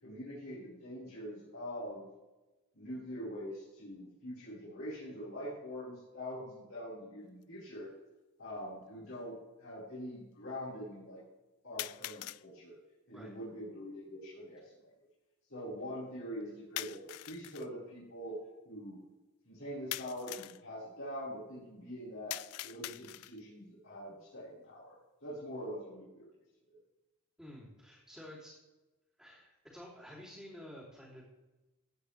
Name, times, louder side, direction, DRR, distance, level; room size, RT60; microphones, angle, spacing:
voice 1, 0.0-2.1 2.7-7.9 8.4-11.2 11.6-12.8 13.1-14.9 15.5-18.4 18.6-19.0 19.4-24.9 25.2-26.3 26.7-26.8, equal, 65° left, -9 dB, 4.9 m, -44 dB
sound 1, 7.4-7.5 8.5-8.6 11.8-12.4 16.8-17.7 19.9-20.6 22.3-23.5, left 17 dB, 90° left, 0.3 m, -42 dB
voice 2, 27.4-28.6 29.2-31.2, equal, ahead, -10 dB, 3.2 m, -51 dB
16.0 x 9.5 x 3.4 m, 1.1 s
head